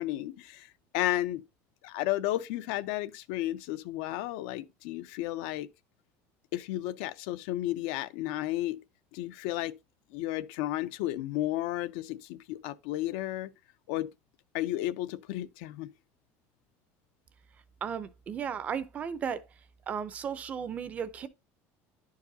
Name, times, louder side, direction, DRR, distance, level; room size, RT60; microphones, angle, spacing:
voice 1, 0.0-1.4 1.8-5.7 6.5-8.8 9.1-9.8 10.1-13.5 13.9-14.1 14.5-15.9, left 15 dB, 65° left, 0.4 m, -33 dB
voice 2, 17.8-19.4 19.9-21.3, right 7 dB, 25° right, 0.4 m, -35 dB
11.0 x 4.7 x 2.7 m
cardioid pair, 175°, 6 cm